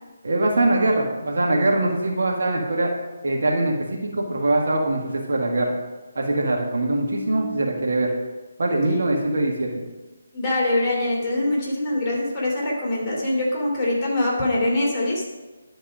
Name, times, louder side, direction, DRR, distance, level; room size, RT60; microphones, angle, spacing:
voice 1, 0.2-2.9 3.2-5.7 6.2-8.1 8.6-9.7, right 2 dB, 55° right, -1 dB, 1.6 m, -22 dB
voice 2, 6.9-7.5 10.3-15.3, left 1 dB, 15° left, -8 dB, 2.7 m, -24 dB
11.5 x 4.7 x 5.1 m, 1.2 s
figure-of-eight pair, 150°, 0 cm